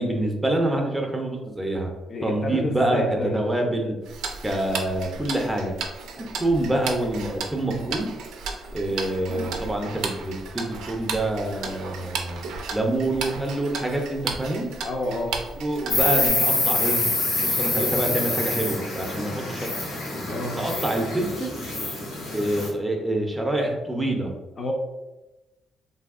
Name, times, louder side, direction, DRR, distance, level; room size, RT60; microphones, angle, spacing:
voice 1, 0.0-1.9 2.2-3.9 4.4-5.7 6.2-8.1 8.7-12.4 12.7-14.7 15.6-17.0 17.4-19.7 20.6-21.5 22.3-24.3, right 1 dB, 10° right, 1 dB, 0.6 m, -26 dB
voice 2, 2.1-3.4 14.8-15.4 20.3-20.6 24.6-24.7, left 1 dB, 45° left, 1 dB, 0.6 m, -29 dB
Tick-tock, 4.1-16.3, right 5 dB, 85° right, 0.4 m, -34 dB
Insect, 15.9-22.7, left 2 dB, 85° left, 1.0 m, -26 dB
3.0 x 2.7 x 2.4 m, 1.0 s
cardioid pair, 90°, 0 cm